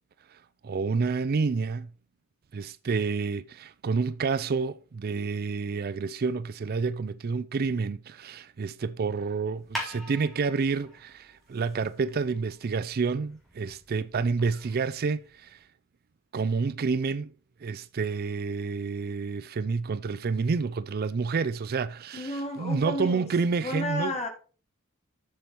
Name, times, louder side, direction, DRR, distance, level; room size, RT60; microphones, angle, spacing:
voice 1, 0.6-1.9 2.5-15.6 16.3-17.3 17.6-24.2, right 4 dB, 45° right, 0.4 m, -29 dB
sound 1, 9.5-15.6, equal, ahead, 3.7 m, -44 dB
voice 2, 22.1-23.3 23.6-24.3, left 1 dB, 30° left, 1.9 m, -32 dB
7.6 x 6.9 x 4.5 m
head